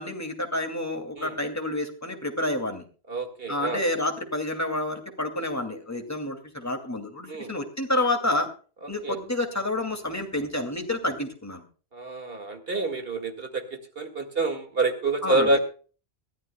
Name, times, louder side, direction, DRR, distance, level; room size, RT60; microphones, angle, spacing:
voice 1, 0.0-2.8 3.5-8.5 8.9-11.6 15.2-15.6, left 1 dB, 15° left, 4 dB, 2.5 m, -29 dB
voice 2, 3.1-3.8 7.3-7.5 8.8-9.2 11.9-15.6, right 2 dB, 65° right, 7 dB, 2.3 m, -27 dB
22.5 x 14.5 x 2.3 m, 0.38 s
omnidirectional pair, 1.1 m